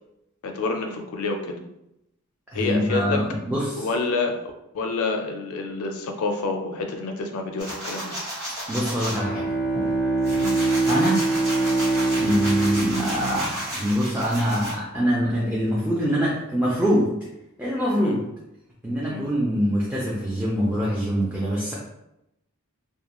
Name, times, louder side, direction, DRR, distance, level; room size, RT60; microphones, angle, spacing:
voice 1, 0.4-1.6 2.5-3.2 3.8-4.3 4.7-8.2 10.4-10.5 18.0-18.2 19.0-19.2, left 3 dB, 70° left, 3 dB, 0.4 m, -28 dB
voice 2, 2.5-3.9 8.7-9.5 10.2-10.4 10.9-11.2 12.2-17.1 17.6-18.2 18.8-21.7, equal, 5° right, -7 dB, 0.4 m, -24 dB
sound 1, 7.6-9.2 9.7-14.7, right 1 dB, 75° right, 1.4 m, -33 dB
Bowed string instrument, 9.0-14.5, right 3 dB, 55° right, 0.6 m, -25 dB
2.4 x 2.1 x 2.9 m, 0.85 s
head